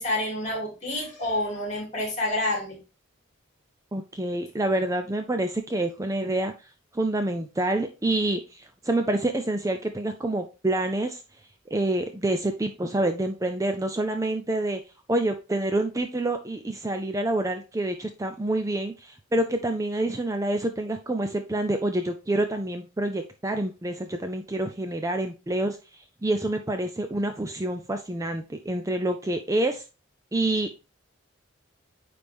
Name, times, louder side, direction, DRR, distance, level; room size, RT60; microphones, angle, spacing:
voice 1, 0.0-2.8, left 1 dB, 35° left, -1 dB, 2.8 m, -28 dB
voice 2, 3.9-6.5 6.9-11.2 11.7-14.8 15.1-29.8 30.3-30.8, right 1 dB, 15° right, 6 dB, 0.4 m, -27 dB
9.2 x 3.4 x 3.4 m, 0.30 s
head